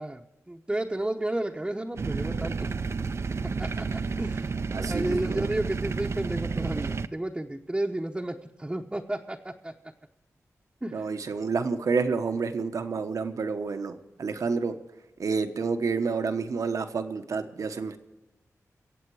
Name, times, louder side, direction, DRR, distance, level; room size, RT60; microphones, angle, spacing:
voice 1, 0.0-2.7 3.6-4.5 4.8-9.7 10.8-11.1, right 1 dB, 15° right, 0 dB, 0.9 m, -32 dB
sound 1, 2.0-7.1, right 4 dB, 55° right, 0.6 m, -31 dB
voice 2, 4.7-5.5 10.9-14.8 15.2-18.0, right 4 dB, 75° right, 8 dB, 1.2 m, -29 dB
24.0 x 8.1 x 4.8 m, 1.1 s
wide cardioid pair, 85°, 6 cm